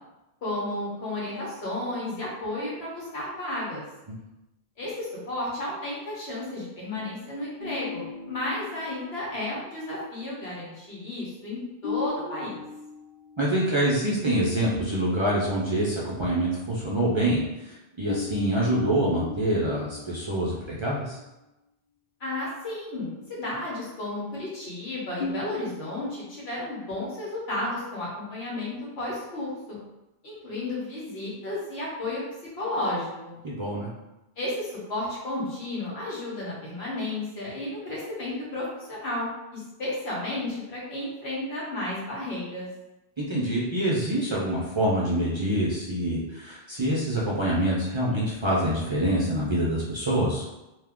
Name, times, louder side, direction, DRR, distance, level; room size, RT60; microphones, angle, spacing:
voice 1, 0.4-3.8 4.8-12.6 22.2-29.8 30.2-32.2 32.5-33.4 34.4-42.7, left 1 dB, 85° left, -6 dB, 1.3 m, -33 dB
sound 1, 7.6-9.6 11.8-14.0 14.3-14.5 18.1-21.2 25.2-25.9, left 5 dB, 55° left, 0.7 m, -37 dB
voice 2, 13.4-21.2 33.4-33.9 43.2-50.5, right 1 dB, 40° right, -6 dB, 0.4 m, -26 dB
2.7 x 2.3 x 3.5 m, 0.97 s
omnidirectional pair, 1.0 m